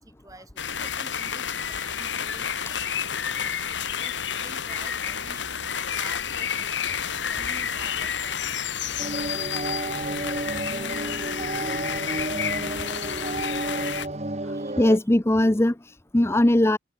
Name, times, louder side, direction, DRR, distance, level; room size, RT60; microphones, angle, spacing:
voice 1, 0.0-9.7 14.5-14.8, right 2 dB, 20° right, 6.5 m, -49 dB
sound 1, 0.6-14.1, left 8 dB, 80° left, 1.7 m, -30 dB
sound 2, 9.0-15.0, right 2 dB, 40° right, 2.0 m, -31 dB
voice 2, 14.4-16.8, left 1 dB, 15° left, 0.6 m, -21 dB
head